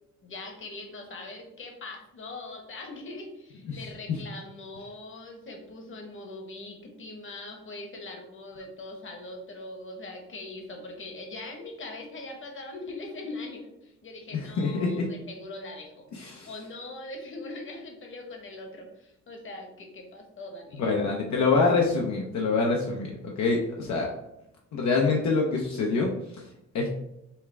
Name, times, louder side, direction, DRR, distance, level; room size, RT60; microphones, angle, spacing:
voice 1, 0.2-16.1 16.5-20.9, left 2 dB, 40° left, 2 dB, 1.2 m, -41 dB
voice 2, 14.3-15.1 16.1-16.5 20.8-24.1 24.7-26.4 26.7-26.9, left 4 dB, 65° left, -1 dB, 0.8 m, -26 dB
5.6 x 2.4 x 3.3 m, 0.84 s
cardioid pair, 90°, 30 cm